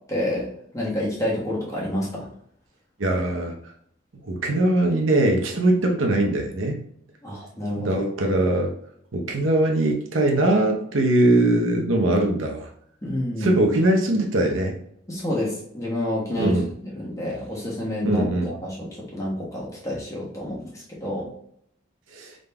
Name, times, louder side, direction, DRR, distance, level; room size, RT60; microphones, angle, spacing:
voice 1, 0.1-2.3 7.2-8.0 13.0-13.6 15.1-16.6 16.9-21.3, left 1 dB, 15° left, -5 dB, 1.2 m, -28 dB
voice 2, 3.0-3.5 4.2-6.8 7.8-8.7 9.1-12.7 13.4-14.7 16.4-16.7 18.0-18.5 22.1-22.3, right 1 dB, 80° right, 2 dB, 0.8 m, -21 dB
5.1 x 3.8 x 2.2 m, 0.69 s
head